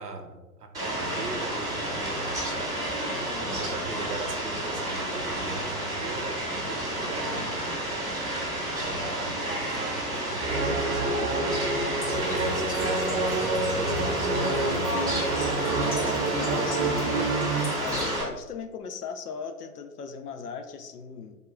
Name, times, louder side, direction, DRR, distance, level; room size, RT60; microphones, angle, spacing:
voice 1, 0.0-2.8 3.4-7.8 8.9-14.3, right 3 dB, 85° right, 5 dB, 0.6 m, -39 dB
Fowl, 0.7-18.2, right 1 dB, 10° right, 0.7 m, -31 dB
voice 2, 3.1-3.5 15.4-21.4, left 6 dB, 80° left, 8 dB, 0.5 m, -38 dB
sound 1, 10.4-17.6, right 2 dB, 50° right, 0.7 m, -28 dB
sound 2, 12.0-18.2, left 1 dB, 25° left, 0.4 m, -40 dB
3.5 x 2.2 x 3.7 m, 1.1 s
figure-of-eight pair, 120°, 46 cm